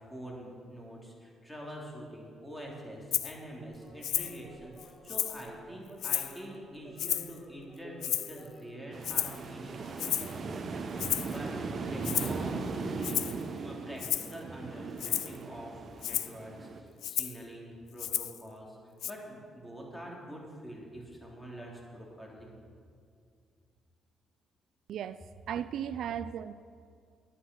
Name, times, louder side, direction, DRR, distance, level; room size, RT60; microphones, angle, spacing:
voice 1, 0.1-13.3 13.6-14.0 14.3-15.7 16.0-18.8 19.0-22.5, right 1 dB, 5° left, -2 dB, 3.1 m, -45 dB
Rattle (instrument), 3.1-3.3 4.0-4.4 4.8-5.5 6.0-6.4 7.0-7.4 8.0-8.5 9.0-9.4 10.0-10.4 11.0-11.4 12.0-12.4 13.0-13.4 14.0-14.3 15.0-15.4 16.0-16.3 17.0-17.4 18.0-18.4 19.0-19.1, left 11 dB, 80° left, 0.4 m, -32 dB
sound 1, 3.7-12.7, right 2 dB, 20° right, 2.2 m, -53 dB
sound 2, 8.9-16.8, right 4 dB, 50° right, 1.0 m, -38 dB
voice 2, 24.9-26.5, right 9 dB, 70° right, 13 dB, 0.3 m, -36 dB
10.0 x 9.9 x 6.1 m, 2.2 s
cardioid pair, 90°, 0 cm